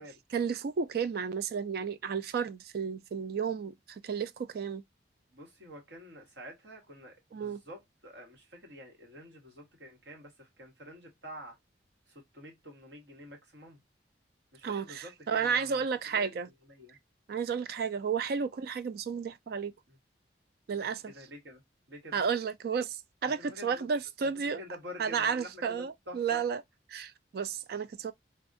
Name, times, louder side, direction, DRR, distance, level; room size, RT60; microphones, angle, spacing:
voice 1, 0.3-4.8 7.3-7.6 14.6-16.5 17.3-19.7 20.7-21.1 22.1-24.6 25.0-26.6 26.9-28.1, right 6 dB, 55° right, 0.3 m, -32 dB
voice 2, 5.3-11.6 12.1-13.8 14.5-15.8 16.1-16.3 16.7-17.0 19.9-20.0 21.1-21.6 21.9-22.2 23.2-23.9 24.2-26.4, equal, 80° right, 1.3 m, -48 dB
3.4 x 2.3 x 2.5 m
head